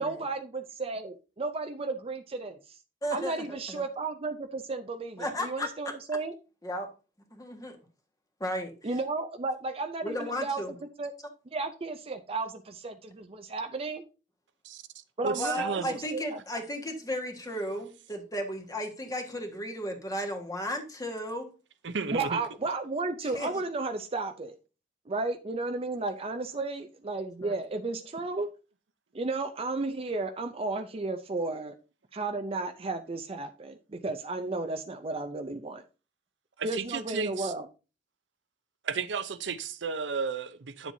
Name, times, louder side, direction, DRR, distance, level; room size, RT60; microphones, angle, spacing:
voice 1, 0.0-2.8 3.1-6.3 8.8-10.6 11.0-11.1 11.5-14.0 15.2-16.4 22.1-24.6 25.1-28.5 29.1-31.7 32.1-35.8 36.6-37.7, right 3 dB, 35° right, 0.5 m, -33 dB
voice 2, 3.0-3.8 5.2-5.9 6.6-6.9 7.3-7.8 8.4-8.7 10.0-10.7 15.4-21.5 23.2-23.5 27.4-27.5, equal, 20° left, 1.6 m, -34 dB
voice 3, 15.2-16.0 21.8-22.4 36.6-37.5 38.8-40.9, right 5 dB, 80° right, 0.7 m, -33 dB
9.8 x 7.3 x 2.7 m
head